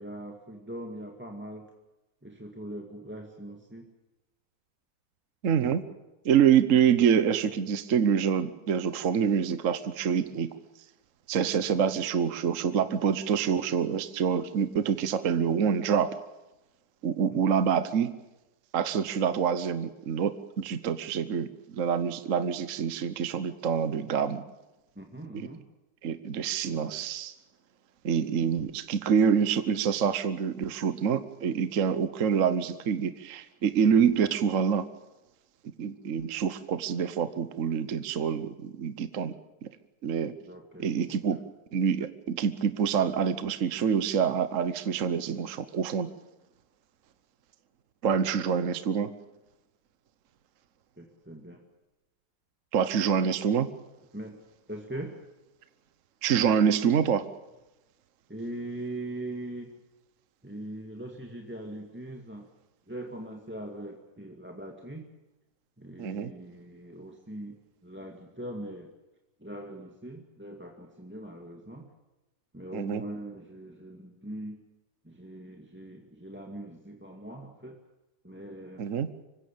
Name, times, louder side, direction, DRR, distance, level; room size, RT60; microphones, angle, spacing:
voice 1, 0.0-1.7 2.2-3.9 17.3-17.5 25.0-25.6 40.5-41.4 51.0-51.6 54.1-54.4 54.7-55.2 58.3-59.7 60.4-62.5 62.9-65.1 65.8-68.9 69.4-71.9 72.5-74.6 75.0-77.8 78.2-78.9, right 1 dB, 5° right, 1 dB, 2.0 m, -41 dB
voice 2, 5.4-5.8 6.2-10.5 11.3-16.2 17.0-18.1 18.7-24.4 25.3-25.5 26.0-27.3 28.0-34.9 35.8-39.3 39.6-39.7 40.0-40.3 40.8-41.4 41.7-46.1 48.0-49.1 52.7-53.7 56.2-57.2 66.0-66.3 72.7-73.0 78.8-79.1, right 7 dB, 50° right, 12 dB, 1.2 m, -26 dB
25.5 x 16.0 x 8.9 m, 1.0 s
omnidirectional pair, 1.9 m